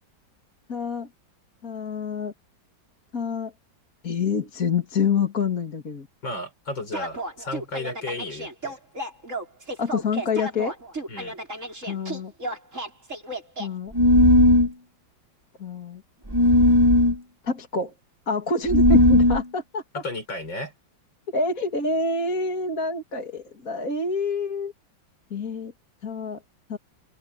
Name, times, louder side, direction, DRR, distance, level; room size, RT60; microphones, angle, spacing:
voice 1, 0.7-1.1 1.6-2.3 3.1-3.5 4.0-6.1 9.8-10.7 11.8-12.3 13.6-13.9 15.6-16.0 17.4-17.9 18.3-19.8 21.3-24.7 25.3-25.7 26.0-26.4 26.7-26.8, left 4 dB, 45° left, 3.0 m, -27 dB
voice 2, 6.2-8.8 11.1-11.3 20.0-20.7, left 2 dB, 70° left, 7.4 m, -33 dB
sound 1, 6.9-13.7, right 1 dB, 40° right, 7.0 m, -33 dB
sound 2, 13.9-14.7 16.3-17.2 18.7-19.4, left 1 dB, 15° right, 1.4 m, -16 dB
open air
omnidirectional pair, 2.1 m